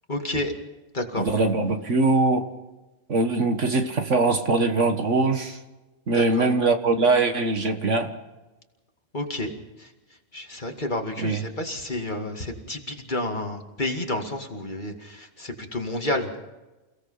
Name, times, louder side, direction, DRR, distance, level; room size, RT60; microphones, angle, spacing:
voice 1, 0.1-0.5 0.9-1.3 6.1-6.5 9.1-9.5 9.8-9.9 10.3-16.5, left 1 dB, 35° left, 3 dB, 2.4 m, -30 dB
voice 2, 1.2-2.5 3.1-5.6 6.1-8.1 11.2-11.4, right 3 dB, 55° right, 6 dB, 1.9 m, -22 dB
29.0 x 17.5 x 5.7 m, 1.1 s
omnidirectional pair, 1.5 m